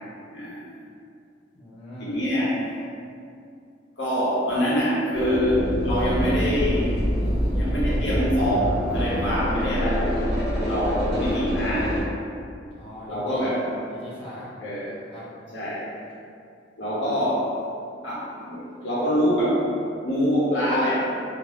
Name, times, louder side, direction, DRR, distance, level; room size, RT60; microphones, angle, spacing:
voice 1, 0.3-0.7 2.0-2.6 4.0-7.1 7.5-12.0 13.1-13.6 14.6-14.9 15.5-15.9 16.8-17.5 18.0-19.7 20.0-21.2, equal, 80° left, -8 dB, 0.8 m, -25 dB
voice 2, 1.5-2.3 12.7-13.5 13.9-14.5 15.1-15.3, left 1 dB, 30° left, -8 dB, 0.6 m, -41 dB
sound 1, 5.1-12.0, equal, 5° right, 0.8 m, -25 dB
2.5 x 2.2 x 3.2 m, 2.4 s
head